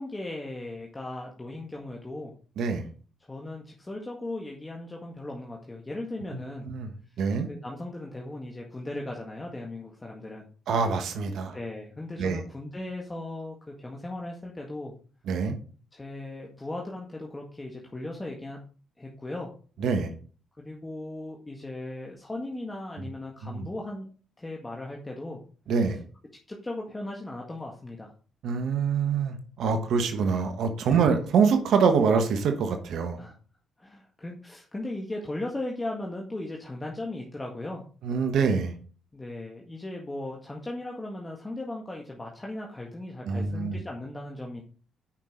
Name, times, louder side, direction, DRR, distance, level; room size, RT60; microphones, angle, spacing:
voice 1, 0.0-2.3 3.3-6.7 7.5-10.5 11.5-14.9 15.9-18.6 19.0-19.5 20.6-24.1 24.4-25.4 25.8-26.0 26.5-28.1 30.9-31.2 33.2-33.4 33.8-37.9 39.1-44.6, left 2 dB, 20° left, -1 dB, 1.7 m, -37 dB
voice 2, 2.6-2.9 6.3-6.9 7.2-7.5 10.7-11.6 12.2-12.4 15.3-15.6 19.8-20.1 23.4-23.7 25.7-26.0 28.4-33.2 38.0-38.7 43.3-43.8, right 5 dB, 70° right, 7 dB, 1.2 m, -25 dB
8.9 x 5.8 x 3.8 m, 0.40 s
hypercardioid pair, 50°, 0 cm